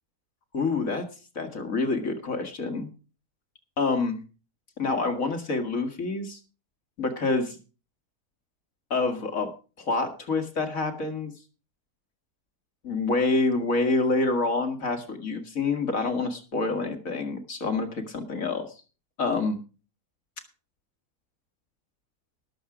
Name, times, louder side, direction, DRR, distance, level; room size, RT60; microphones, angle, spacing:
voice 1, 0.5-1.1 1.4-2.9 3.8-4.2 4.8-6.4 7.0-7.6 8.9-9.5 9.8-11.3 12.8-18.7 19.2-19.6, left 3 dB, 55° left, 6 dB, 2.1 m, -27 dB
19.0 x 7.2 x 4.9 m, 0.35 s
omnidirectional pair, 1.7 m